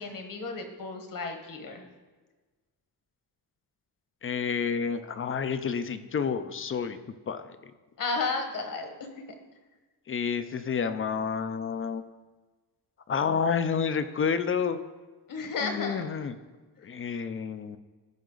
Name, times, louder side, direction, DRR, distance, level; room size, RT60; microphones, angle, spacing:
voice 1, 0.0-1.8 8.0-8.9 15.3-16.0, left 3 dB, 55° left, 5 dB, 1.4 m, -33 dB
voice 2, 4.2-7.0 7.3-7.6 10.1-12.0 13.1-14.8 15.6-16.3 16.8-17.8, left 6 dB, 35° left, 11 dB, 0.4 m, -29 dB
14.5 x 5.4 x 3.9 m, 1.3 s
wide cardioid pair, 155°, 39 cm